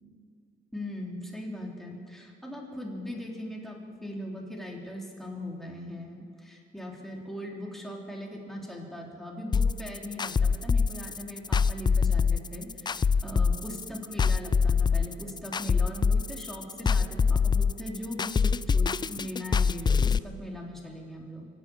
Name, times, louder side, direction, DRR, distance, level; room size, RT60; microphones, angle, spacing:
voice 1, 0.7-21.5, left 1 dB, ahead, -1 dB, 3.3 m, -39 dB
sound 1, 9.5-20.2, left 5 dB, 20° left, 0.3 m, -24 dB
25.0 x 8.3 x 7.0 m, 2.7 s
cardioid pair, 90°, 20 cm